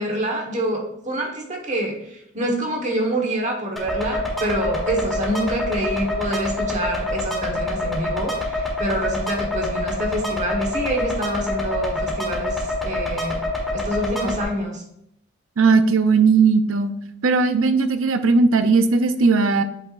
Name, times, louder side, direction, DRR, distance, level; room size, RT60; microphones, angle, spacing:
voice 1, 0.0-13.4 13.7-14.8, right 1 dB, 35° right, 1 dB, 1.3 m, -26 dB
sound 1, 3.8-14.4, left 1 dB, ahead, 1.5 m, -26 dB
voice 2, 15.6-16.9 17.2-19.6, right 4 dB, 85° right, 9 dB, 0.6 m, -17 dB
8.7 x 4.5 x 2.5 m, 0.74 s
head